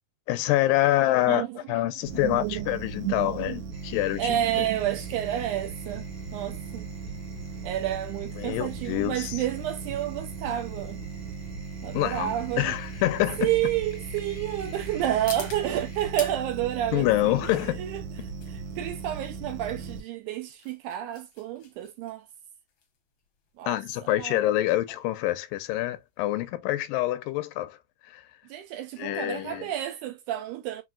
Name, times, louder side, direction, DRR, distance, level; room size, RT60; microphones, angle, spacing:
voice 1, 0.3-4.7 8.4-9.4 11.9-13.5 16.9-17.8 23.7-27.8 28.1-28.2 29.0-29.7, left 15 dB, 85° left, 2.2 m, -26 dB
voice 2, 1.3-1.6 2.2-2.7 3.0-3.6 4.2-6.1 6.3-6.9 7.6-11.0 11.8-12.7 13.4-18.0 18.5-22.3 23.6-23.8 24.2-24.4 28.5-30.8, right 12 dB, 80° right, 1.9 m, -30 dB
sound 1, 2.1-20.0, right 5 dB, 65° right, 1.9 m, -38 dB
sound 2, 3.7-16.1, right 1 dB, 15° right, 0.9 m, -50 dB
sound 3, 11.1-26.3, left 6 dB, 65° left, 1.2 m, -48 dB
6.1 x 2.6 x 2.3 m
omnidirectional pair, 3.9 m